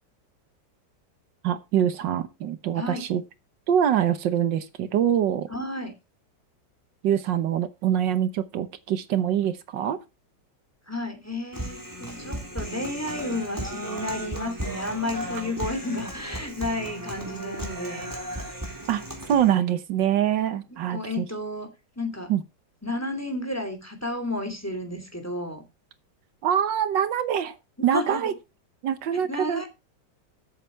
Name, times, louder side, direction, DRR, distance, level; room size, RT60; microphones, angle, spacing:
voice 1, 1.4-3.2 3.7-5.5 7.0-10.0 18.9-19.0 19.3-21.2 22.3-22.4 26.4-27.6 27.8-28.3 28.8-29.7, right 9 dB, 80° right, 1.6 m, -24 dB
voice 2, 5.5-5.9 10.9-18.1 20.7-21.7 22.0-22.3 22.8-25.6 27.8-28.3 29.1-29.7, left 2 dB, 10° left, 2.7 m, -32 dB
Human voice, 11.5-19.5, right 1 dB, 10° right, 3.5 m, -35 dB
13.5 x 8.2 x 4.5 m
omnidirectional pair, 1.9 m